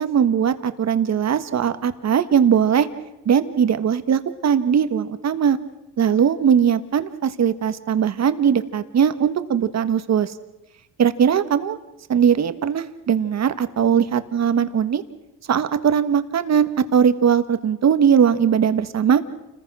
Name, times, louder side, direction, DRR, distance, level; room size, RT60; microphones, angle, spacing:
voice 1, 0.0-2.9 3.2-5.6 6.0-10.3 11.0-11.8 12.1-15.0 15.5-19.2, right 8 dB, 40° right, 11 dB, 1.5 m, -19 dB
29.5 x 21.0 x 6.2 m, 0.94 s
cardioid pair, 130°, 41 cm